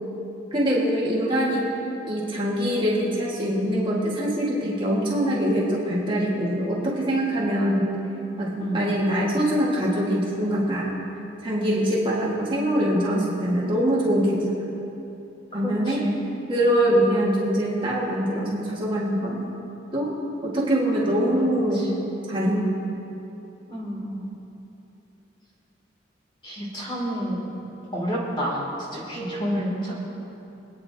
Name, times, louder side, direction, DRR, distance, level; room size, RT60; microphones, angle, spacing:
voice 1, 0.5-1.7 2.1-7.9 8.4-11.0 11.4-14.5 15.5-16.0 16.5-19.4 19.9-20.1 20.4-21.9 22.3-22.7 29.2-29.6, equal, 25° right, -6 dB, 1.9 m, -23 dB
voice 2, 15.5-16.2 21.2-21.3 21.7-21.9 23.7-24.3 26.4-27.4 27.9-28.6 28.9-30.0, equal, 25° left, -5 dB, 2.9 m, -30 dB
25.5 x 9.4 x 2.9 m, 3.0 s
head